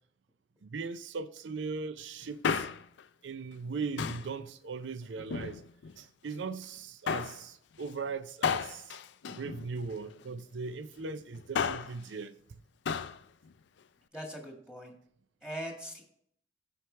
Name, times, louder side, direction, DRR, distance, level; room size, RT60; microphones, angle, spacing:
voice 1, 0.6-2.7 3.2-5.6 6.0-9.0 9.3-12.4, right 4 dB, 75° right, 0.5 m, -39 dB
Male speech man speaking, 2.2-3.0 4.0-4.4 5.2-6.0 7.1-7.4 8.4-10.1 11.3-12.0 12.9-13.2 13.5-13.6, left 6 dB, 70° left, 0.4 m, -33 dB
voice 2, 14.1-14.9 15.4-16.0, equal, 5° right, 1.8 m, -41 dB
14.0 x 4.8 x 3.3 m
head